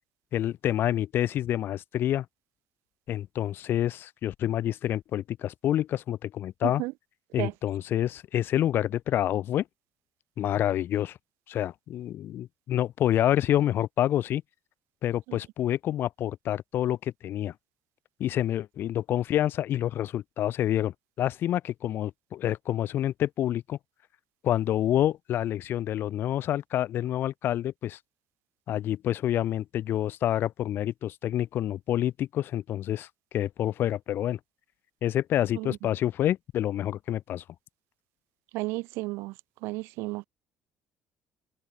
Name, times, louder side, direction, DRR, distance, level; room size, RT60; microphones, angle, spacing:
voice 1, 0.3-2.3 3.1-6.8 7.3-9.6 10.4-11.2 11.5-14.4 15.0-17.5 18.2-23.8 24.4-28.0 28.7-33.1 33.3-34.4 35.0-37.4, left 12 dB, 60° left, 4.3 m, -28 dB
voice 2, 6.6-6.9 7.4-7.5 15.3-15.4 35.6-35.8 38.5-39.3 39.6-40.3, right 22 dB, 90° right, 5.1 m, -33 dB
cardioid pair, 115°, 4 cm